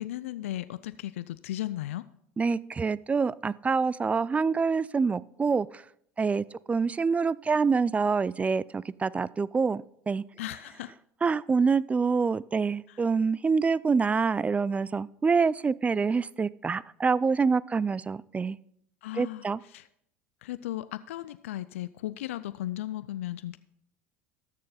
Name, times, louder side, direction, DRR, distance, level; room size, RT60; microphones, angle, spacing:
voice 1, 0.0-2.0 10.4-10.9 12.9-13.0 19.0-19.9 20.4-23.6, left 14 dB, 80° left, 14 dB, 0.3 m, -36 dB
voice 2, 2.4-5.8 6.2-10.2 11.2-18.6 19.2-19.6, right 5 dB, 20° right, 21 dB, 0.3 m, -26 dB
13.5 x 6.5 x 4.1 m, 0.72 s
hypercardioid pair, 80°, 7 cm